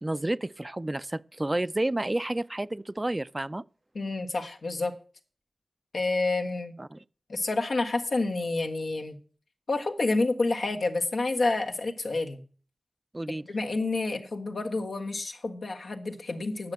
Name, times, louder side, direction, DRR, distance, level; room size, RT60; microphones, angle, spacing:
voice 1, 0.0-3.6 6.8-7.0 13.1-13.4, right 1 dB, 30° right, 0.4 m, -30 dB
voice 2, 3.9-4.9 5.9-6.8 7.3-9.2 9.7-12.4 13.4-16.7, left 3 dB, 85° left, 1.4 m, -29 dB
9.5 x 6.4 x 7.8 m
cardioid pair, 45°, 0 cm